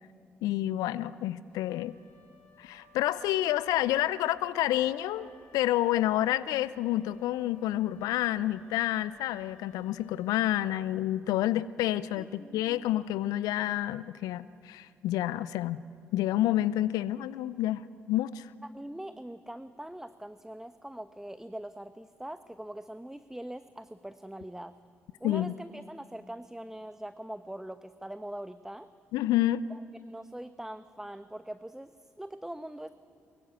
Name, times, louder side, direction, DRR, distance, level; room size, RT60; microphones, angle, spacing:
voice 1, 0.4-2.0 2.6-15.8 16.1-18.5 25.2-25.5 29.1-29.6, left 14 dB, 70° left, 18 dB, 0.5 m, -29 dB
Wind instrument woodwind instrument, 1.5-11.0, left 3 dB, 85° left, 4.7 m, -59 dB
voice 2, 12.2-12.8 18.6-24.8 25.2-28.9 29.7-32.9, right 1 dB, 5° right, 11 dB, 1.0 m, -42 dB
23.5 x 22.5 x 8.2 m, 2.4 s
hypercardioid pair, 40°, 7 cm